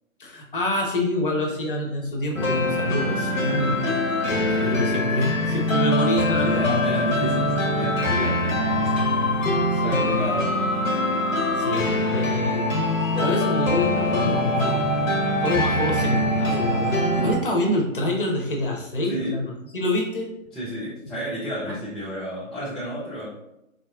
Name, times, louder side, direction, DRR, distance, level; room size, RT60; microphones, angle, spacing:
voice 1, 0.2-6.6 9.7-10.3 11.5-12.7 13.1-20.3, left 1 dB, 40° left, 0 dB, 0.7 m, -27 dB
sound 1, 2.4-17.3, left 1 dB, 70° left, 0.8 m, -23 dB
voice 2, 6.4-9.1 9.8-10.5 19.1-19.4 20.5-23.3, equal, ahead, -11 dB, 0.3 m, -31 dB
3.8 x 2.4 x 2.3 m, 0.84 s
figure-of-eight pair, 140°, 41 cm